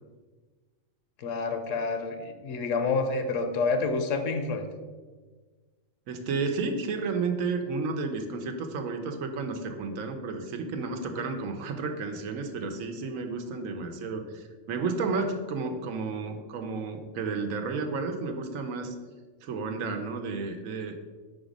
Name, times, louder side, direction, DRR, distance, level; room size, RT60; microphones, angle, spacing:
voice 1, 1.2-4.7, left 4 dB, 70° left, 7 dB, 1.0 m, -28 dB
voice 2, 6.1-18.9 19.4-20.9, right 4 dB, 85° right, 6 dB, 1.1 m, -32 dB
4.9 x 4.0 x 5.1 m, 1.4 s
omnidirectional pair, 1.4 m